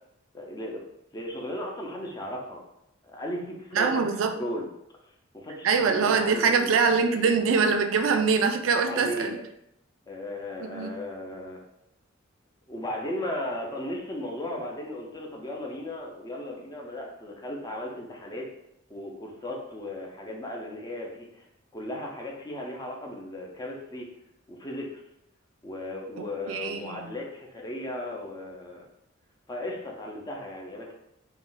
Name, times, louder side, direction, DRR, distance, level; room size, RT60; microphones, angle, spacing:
voice 1, 0.3-0.8 1.1-2.6 3.1-4.0 4.4-4.7 5.1-7.4 8.9-9.4 10.1-11.6 12.7-18.5 18.9-21.5 21.7-24.1 24.5-25.0 25.6-28.9 29.5-30.9, left 1 dB, 20° left, 0 dB, 0.4 m, -36 dB
voice 2, 3.7-4.4 5.6-9.4 10.6-10.9 26.2-27.1, right 5 dB, 75° right, 6 dB, 0.3 m, -24 dB
2.4 x 2.0 x 3.7 m, 0.82 s
head